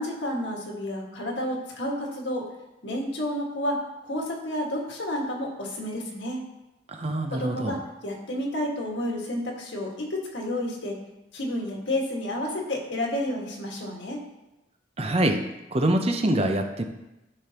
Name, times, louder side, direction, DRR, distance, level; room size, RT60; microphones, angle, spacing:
voice 1, 0.0-2.5 2.8-6.4 7.3-11.0 11.3-14.2, left 1 dB, 70° left, -1 dB, 1.7 m, -30 dB
voice 2, 6.9-7.8 15.0-15.4 15.7-16.8, right 1 dB, 30° right, 5 dB, 0.7 m, -25 dB
13.0 x 5.1 x 2.9 m, 0.95 s
head